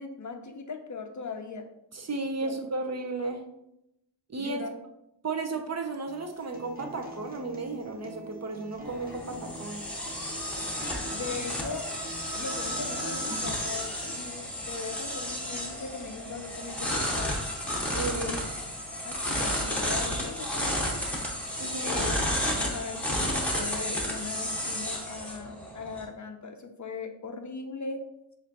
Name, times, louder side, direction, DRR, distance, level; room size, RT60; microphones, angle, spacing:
voice 1, 0.0-1.6 2.4-2.5 4.4-4.8 9.3-9.4 11.1-11.9 12.3-17.4 18.1-18.5 19.0-20.9 21.8-28.0, left 4 dB, 45° left, 5 dB, 0.6 m, -39 dB
voice 2, 1.9-3.4 4.3-4.7 5.2-9.9 17.9-18.3 21.6-22.0, right 3 dB, 35° right, 4 dB, 0.6 m, -34 dB
Acoustic guitar, 6.1-14.1, equal, 20° right, 1.0 m, -44 dB
sound 1, 8.8-26.0, equal, 5° left, 1.2 m, -32 dB
7.2 x 2.6 x 2.8 m, 0.83 s
cardioid pair, 80°, 44 cm